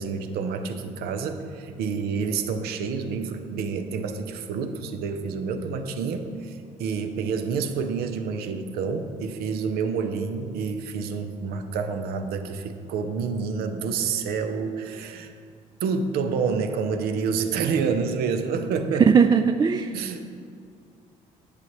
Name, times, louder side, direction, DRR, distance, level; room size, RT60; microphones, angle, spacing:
voice 1, 0.0-15.3 15.8-19.1 19.9-20.3, right 5 dB, 65° right, 8 dB, 0.7 m, -28 dB
voice 2, 19.0-20.0, right 6 dB, 25° right, 7 dB, 0.3 m, -18 dB
10.5 x 8.2 x 3.1 m, 2.3 s
hypercardioid pair, 55°, 17 cm